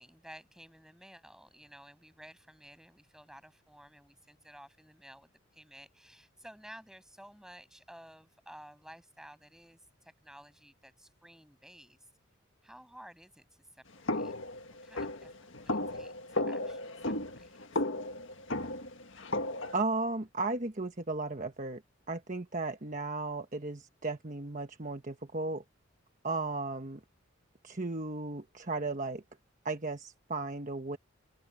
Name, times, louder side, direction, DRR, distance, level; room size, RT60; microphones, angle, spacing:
voice 1, 0.0-12.1 12.6-14.3 14.7-17.8, equal, 5° right, 7.9 m, -54 dB
sound 1, 14.1-19.8, left 2 dB, 65° left, 1.7 m, -35 dB
voice 2, 19.7-21.8 22.1-25.6 26.2-27.0 27.6-29.2 29.6-31.0, right 3 dB, 40° right, 1.2 m, -35 dB
open air
head